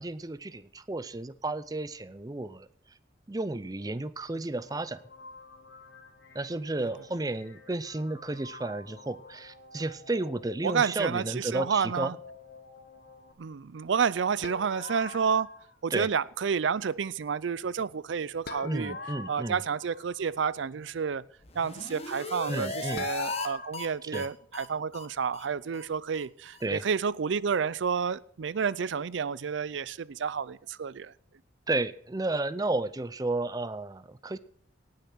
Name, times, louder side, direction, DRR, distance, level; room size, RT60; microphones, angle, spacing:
voice 1, 0.0-2.7 3.3-5.0 6.3-12.1 15.9-16.1 18.6-19.6 22.5-23.1 24.0-24.3 26.6-26.8 31.7-34.4, right 2 dB, 20° right, 14 dB, 0.5 m, -32 dB
sound 1, 4.6-13.3, left 3 dB, 70° left, 1.9 m, -51 dB
voice 2, 10.6-12.1 13.4-15.5 15.8-18.9 19.3-21.2 21.6-31.1, right 6 dB, 80° right, 20 dB, 0.5 m, -30 dB
sound 2, 14.4-15.8 18.5-20.4 23.0-23.7, left 4 dB, 55° left, 1.0 m, -42 dB
sound 3, 21.4-23.5 23.7-23.9 24.1-24.3 24.5-24.7 24.9-25.1 25.3-25.5 25.7-25.8 26.1-26.2 26.5-26.6, left 3 dB, 35° left, 1.3 m, -36 dB
18.5 x 6.7 x 6.1 m, 0.63 s
head